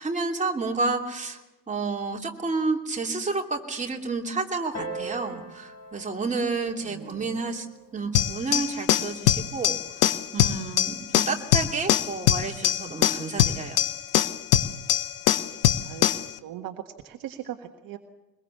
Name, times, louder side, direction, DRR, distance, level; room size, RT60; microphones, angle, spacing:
voice 1, 0.0-1.4 1.7-13.8, right 3 dB, 15° right, 0 dB, 3.0 m, -30 dB
Piano, 4.7-9.9 10.8-10.9, right 3 dB, 30° left, 5.9 m, -42 dB
voice 2, 6.9-7.3 15.5-16.1 16.4-18.0, right 11 dB, 45° right, 4 dB, 1.7 m, -39 dB
sound 1, 8.1-16.3, left 11 dB, 70° left, 1.1 m, -23 dB
23.0 x 21.5 x 7.1 m, 1.1 s
figure-of-eight pair, 70°, 48 cm